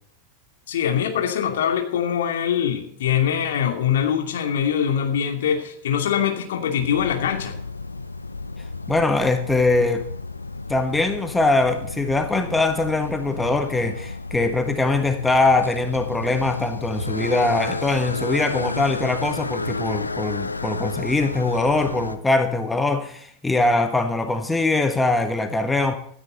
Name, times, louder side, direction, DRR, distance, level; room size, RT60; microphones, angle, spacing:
voice 1, 0.7-7.6, left 8 dB, 60° left, 2.6 m, -23 dB
sound 1, 6.8-22.2, left 3 dB, 80° left, 0.8 m, -32 dB
voice 2, 8.9-10.1 10.7-25.9, left 2 dB, 10° left, 1.4 m, -22 dB
16.0 x 13.5 x 4.0 m
figure-of-eight pair, 90°, 0 cm